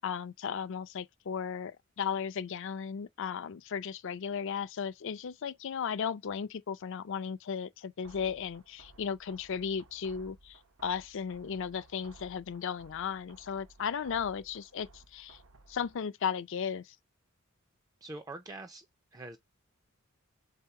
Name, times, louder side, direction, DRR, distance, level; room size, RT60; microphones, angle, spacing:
voice 1, 0.0-15.4 15.7-17.0, left 7 dB, 60° left, 0.4 m, -35 dB
sound 1, 8.0-16.0, right 2 dB, 75° right, 0.7 m, -58 dB
voice 2, 18.0-18.9 19.1-19.4, right 2 dB, 15° right, 0.4 m, -44 dB
3.7 x 2.8 x 4.6 m
head